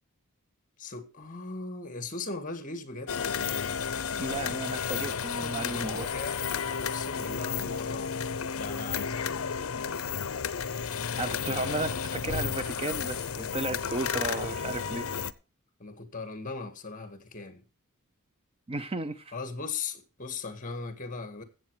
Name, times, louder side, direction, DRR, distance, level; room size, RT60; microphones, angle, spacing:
voice 1, 0.8-3.3 5.1-6.4 6.8-8.2 8.5-9.5 15.8-17.6 19.3-21.4, left 4 dB, 40° left, 1.8 m, -39 dB
sound 1, 3.1-15.3, left 6 dB, 70° left, 0.6 m, -32 dB
voice 2, 4.2-6.1 11.2-15.1 18.7-19.3, right 2 dB, 25° right, 0.6 m, -34 dB
15.0 x 7.4 x 4.8 m
head